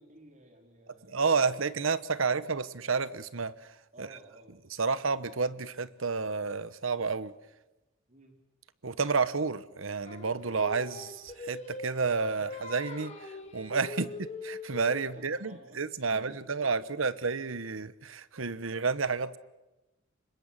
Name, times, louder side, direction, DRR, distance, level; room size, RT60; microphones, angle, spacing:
voice 1, 0.0-2.5 3.9-4.6 8.1-8.4 13.9-14.1 15.1-15.8 16.1-17.2, right 1 dB, 35° right, 3 dB, 4.4 m, -55 dB
voice 2, 1.1-3.6 4.0-4.1 4.8-7.3 8.8-13.2 13.5-14.1 14.4-19.4, right 4 dB, 80° right, 15 dB, 1.1 m, -30 dB
Singing, 10.0-15.3, left 2 dB, 35° left, 3.2 m, -42 dB
25.5 x 22.0 x 7.5 m, 1.0 s
head